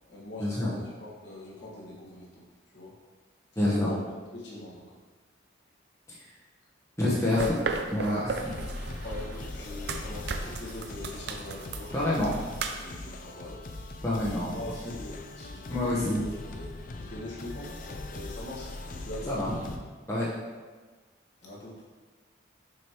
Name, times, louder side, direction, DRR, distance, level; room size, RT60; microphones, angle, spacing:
voice 1, 0.1-2.4 2.7-3.0 3.5-4.0 4.3-4.9 7.3-7.5 9.0-12.4 12.8-16.7 16.9-19.3 21.4-21.8, left 2 dB, 65° left, -6 dB, 1.5 m, -41 dB
voice 2, 3.6-3.9 7.0-7.6 7.9-8.5 11.9-12.3 14.0-14.5 15.7-16.2 19.3-19.6 20.1-20.3, left 1 dB, 15° left, -7 dB, 0.9 m, -27 dB
sound 1, 7.4-12.8, right 4 dB, 55° right, 0.4 m, -36 dB
sound 2, 8.4-19.8, left 2 dB, 45° left, 0.4 m, -41 dB
6.5 x 5.1 x 3.0 m, 1.4 s
head